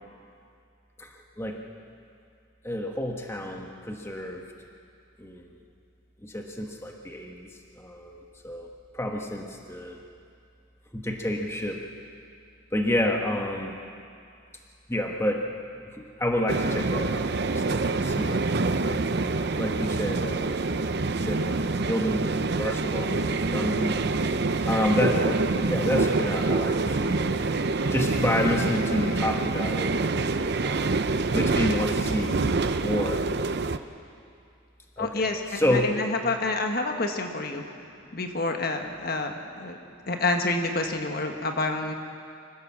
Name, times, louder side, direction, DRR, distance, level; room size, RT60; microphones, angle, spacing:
voice 1, 2.6-4.4 5.2-5.5 6.2-7.5 7.8-8.7 8.9-10.0 10.9-11.8 12.7-13.8 14.9-15.4 16.0-18.4 18.8-19.1 19.6-20.6 21.2-24.0 24.7-27.6 27.9-29.9 30.6-33.2 35.0-35.9, left 1 dB, 10° left, 2 dB, 1.3 m, -29 dB
sound 1, 16.5-33.8, right 3 dB, 50° right, 0.7 m, -26 dB
voice 2, 35.0-37.6 38.1-39.8 40.1-41.9, left 2 dB, 45° left, 4 dB, 1.4 m, -28 dB
25.0 x 15.5 x 7.4 m, 2.4 s
head